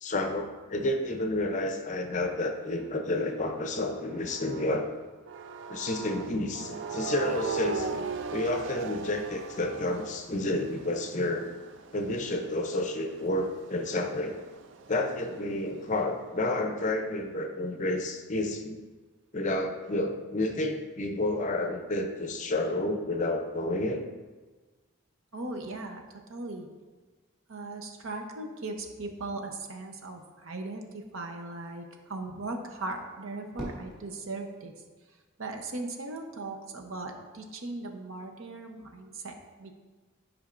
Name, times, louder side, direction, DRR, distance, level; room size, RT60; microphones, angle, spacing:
voice 1, 0.0-4.9 5.7-11.5 11.9-14.4 14.9-18.8 19.3-24.0, left 1 dB, 35° left, 5 dB, 0.5 m, -30 dB
sound 1, 2.0-4.9 5.3-15.7, right 5 dB, 60° right, 0.4 m, -40 dB
voice 2, 25.3-26.7 27.5-34.7 35.4-39.7, right 2 dB, 75° right, 3 dB, 0.8 m, -38 dB
Fireworks, 33.5-35.8, right 1 dB, ahead, 2.0 m, -45 dB
10.5 x 4.9 x 2.5 m, 1.3 s
head